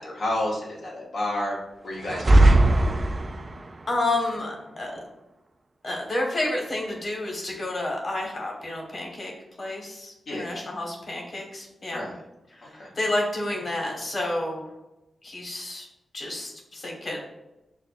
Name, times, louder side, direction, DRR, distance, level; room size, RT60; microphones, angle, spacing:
voice 1, 0.0-1.6 1.8-2.6 10.3-10.6 11.9-12.2 12.6-12.9, left 1 dB, 80° left, -4 dB, 0.9 m, -30 dB
sound 1, 2.0-3.7, right 1 dB, 45° right, 0.3 m, -18 dB
voice 2, 3.9-4.9 5.8-9.3 9.6-12.0 12.5-14.7 15.2-15.9 16.1-17.2, left 2 dB, 55° left, -1 dB, 1.3 m, -30 dB
6.5 x 2.2 x 2.5 m, 0.96 s
cardioid pair, 50°, 0 cm